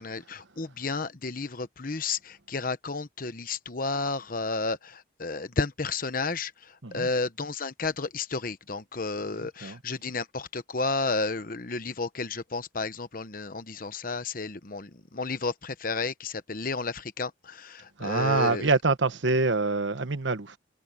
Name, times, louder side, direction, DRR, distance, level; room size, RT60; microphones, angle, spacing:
voice 1, 0.0-18.6, left 3 dB, 50° left, 1.1 m, -32 dB
voice 2, 18.0-20.6, right 3 dB, 80° right, 1.2 m, -25 dB
head